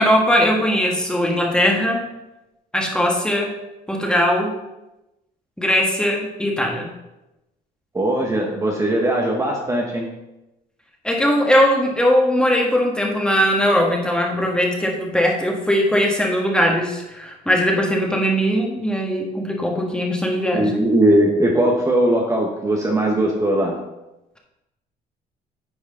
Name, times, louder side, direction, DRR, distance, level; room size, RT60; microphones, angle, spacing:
voice 1, 0.0-2.0 2.7-3.5 3.9-4.5 5.6-6.9 11.0-20.8, equal, 5° left, 0 dB, 1.5 m, -19 dB
voice 2, 7.9-10.1 20.5-23.8, right 1 dB, 20° right, -1 dB, 1.0 m, -19 dB
9.7 x 4.7 x 3.7 m, 0.96 s
cardioid pair, 110°, 17 cm